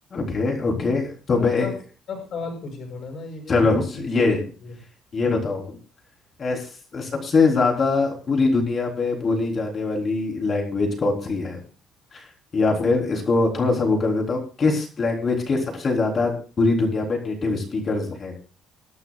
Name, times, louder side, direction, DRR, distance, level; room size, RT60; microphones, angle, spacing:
voice 1, 0.1-1.7 3.5-4.4 5.1-5.8 6.4-6.7 6.9-11.6 12.1-12.2 12.5-18.3, left 3 dB, 30° left, 1 dB, 3.8 m, -22 dB
voice 2, 1.3-1.7 2.1-4.3 4.6-4.7, left 4 dB, 45° left, 3 dB, 6.1 m, -34 dB
21.0 x 11.5 x 2.4 m, 0.37 s
cardioid pair, 150°, 0 cm